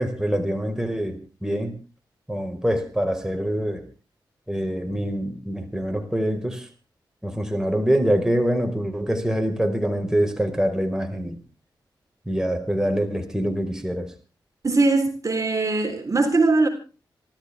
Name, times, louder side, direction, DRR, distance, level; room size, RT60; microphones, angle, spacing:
voice 1, 0.0-1.7 2.3-3.8 4.5-6.7 7.2-11.4 12.3-14.1, equal, 5° right, 4.8 m, -25 dB
voice 2, 14.6-16.7, right 3 dB, 40° right, 3.9 m, -20 dB
27.0 x 13.5 x 3.6 m
cardioid pair, 45°, 8 cm